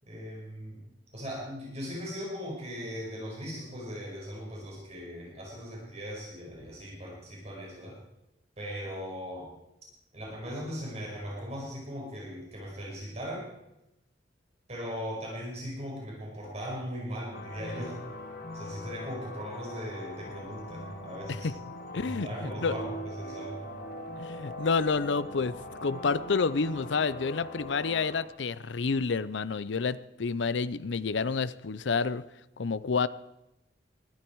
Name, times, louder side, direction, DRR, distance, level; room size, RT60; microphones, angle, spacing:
voice 1, 0.1-0.8 1.1-8.0 8.6-9.5 10.1-13.5 14.7-18.0 18.5-21.5 22.0-23.6, equal, 35° right, -3 dB, 5.5 m, -39 dB
sound 1, 17.3-28.2, left 1 dB, 55° left, 1.9 m, -41 dB
voice 2, 21.9-22.8 24.2-25.5 25.8-32.2 32.6-33.1, left 4 dB, 80° left, 16 dB, 0.6 m, -29 dB
20.5 x 13.5 x 4.7 m, 0.87 s
head